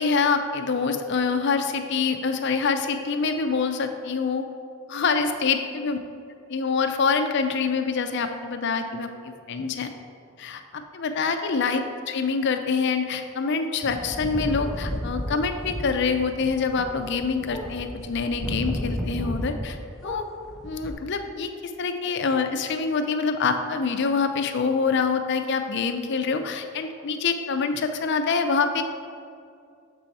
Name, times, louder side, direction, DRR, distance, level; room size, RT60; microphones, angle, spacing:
voice 1, 0.0-4.4 4.9-6.0 6.5-9.9 10.4-19.8 20.0-20.2 20.6-28.8, left 5 dB, 60° left, 7 dB, 0.5 m, -25 dB
sound 1, 13.8-19.8 20.0-20.9, equal, ahead, 0.5 m, -33 dB
6.8 x 4.5 x 4.1 m, 2.4 s
head